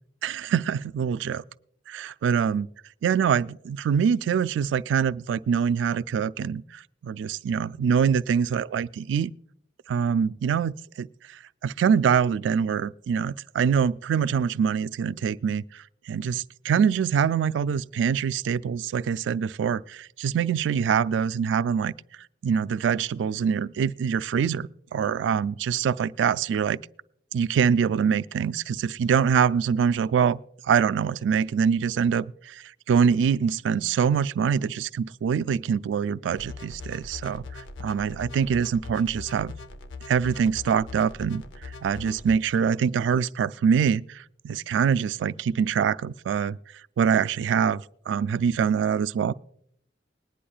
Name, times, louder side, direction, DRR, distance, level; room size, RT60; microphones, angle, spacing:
voice 1, 0.2-1.4 1.9-2.7 3.0-9.3 9.9-21.9 22.4-26.8 27.3-39.5 40.1-46.6 47.0-49.3, right 7 dB, 80° right, 0.3 m, -24 dB
sound 1, 36.4-42.4, left 3 dB, 85° left, 0.7 m, -41 dB
21.0 x 10.0 x 2.3 m
head